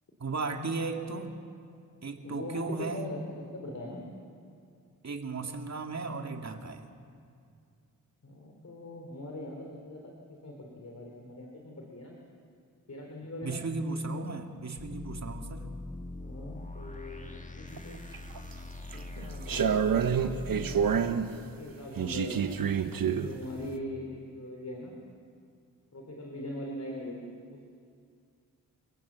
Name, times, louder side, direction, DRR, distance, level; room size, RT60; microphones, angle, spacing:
voice 1, 0.2-1.4 2.0-3.1 5.0-6.9 13.4-15.7, right 3 dB, 50° right, 4 dB, 2.3 m, -35 dB
voice 2, 2.2-4.0 8.2-10.1 10.4-12.1 12.9-13.6 16.2-18.0 18.9-21.1 21.4-22.7 23.2-25.0 25.9-27.2 27.5-27.7, left 1 dB, 50° left, 0 dB, 3.6 m, -41 dB
sound 1, 14.8-21.0, left 2 dB, 20° left, 1.7 m, -42 dB
sound 2, 17.8-18.4 18.9-21.3 22.0-23.3, right 7 dB, 70° right, 1.3 m, -28 dB
28.5 x 17.0 x 7.5 m, 2.3 s
cardioid pair, 50°, 35 cm